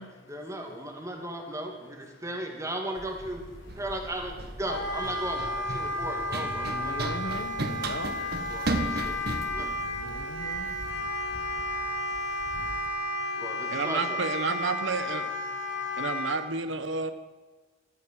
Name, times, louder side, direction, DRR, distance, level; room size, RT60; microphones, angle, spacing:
voice 1, 0.0-3.4 3.8-4.3 4.6-7.3 8.5-9.2 9.5-9.7 13.4-14.5, right 1 dB, 15° right, 2 dB, 2.4 m, -36 dB
Run, 3.0-10.9, right 2 dB, 55° right, 1.5 m, -36 dB
Wind instrument woodwind instrument, 4.7-16.4, left 1 dB, 60° left, 3.3 m, -32 dB
sound 1, 5.8-6.2 6.5-12.9, equal, 30° left, 1.5 m, -49 dB
voice 2, 6.5-8.2 9.8-10.7 11.5-11.6, left 2 dB, 75° left, 9 dB, 1.4 m, -40 dB
voice 3, 13.7-15.3 16.0-17.1, right 4 dB, 70° right, 10 dB, 1.1 m, -30 dB
14.5 x 13.0 x 7.6 m, 1.3 s
head